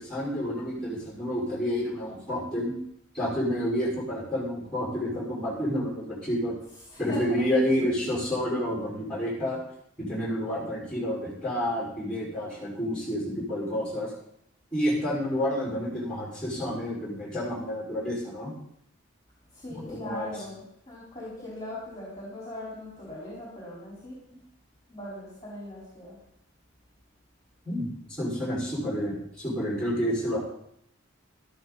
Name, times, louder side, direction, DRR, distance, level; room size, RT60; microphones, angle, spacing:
voice 1, 0.0-2.7 3.1-6.5 7.0-9.6 10.0-14.1 14.7-18.5 19.7-20.4 27.6-27.9 28.2-30.4, equal, 5° left, -5 dB, 5.9 m, -29 dB
voice 2, 6.9-7.9 19.5-24.2 24.9-26.2, left 1 dB, 20° left, -7 dB, 4.7 m, -39 dB
13.5 x 13.0 x 4.3 m, 0.72 s
head